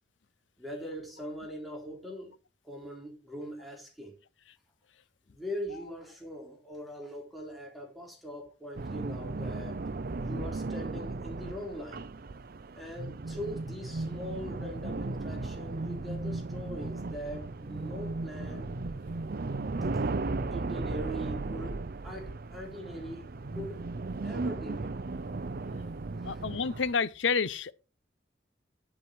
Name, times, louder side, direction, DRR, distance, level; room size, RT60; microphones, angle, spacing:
voice 1, 0.6-2.3 2.6-4.1 5.3-9.8 10.2-12.1 12.8-18.7 19.9-20.1 20.5-23.9 24.2-25.0 26.2-26.4, equal, ahead, 3.8 m, -42 dB
sound 1, 8.8-26.9, right 3 dB, 55° right, 0.6 m, -36 dB
voice 2, 26.2-27.7, left 5 dB, 80° left, 0.7 m, -29 dB
9.8 x 8.8 x 4.5 m
head